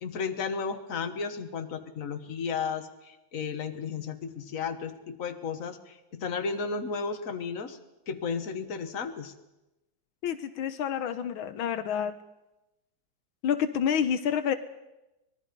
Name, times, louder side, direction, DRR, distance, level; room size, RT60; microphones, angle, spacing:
voice 1, 0.0-7.8 8.1-9.3, left 5 dB, 45° left, 7 dB, 1.7 m, -34 dB
voice 2, 10.2-12.2 13.4-14.5, left 8 dB, 80° left, 10 dB, 1.7 m, -28 dB
24.5 x 20.5 x 5.3 m, 0.97 s
omnidirectional pair, 2.2 m